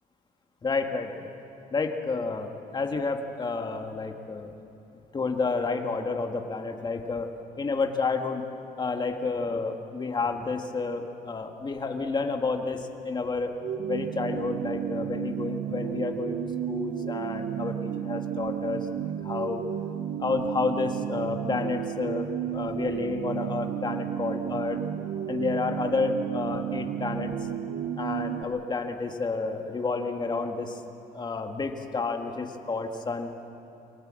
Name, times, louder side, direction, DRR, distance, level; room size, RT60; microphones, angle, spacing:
voice 1, 0.6-1.3 1.7-4.5 5.1-7.3 7.6-8.5 8.8-13.5 13.9-19.6 20.2-24.8 25.3-27.3 28.0-30.8 31.1-33.3, left 4 dB, 25° left, 4 dB, 1.7 m, -30 dB
sound 1, 13.6-28.4, right 9 dB, 55° right, 1.0 m, -32 dB
24.5 x 18.5 x 7.7 m, 2.8 s
cardioid pair, 110°, 17 cm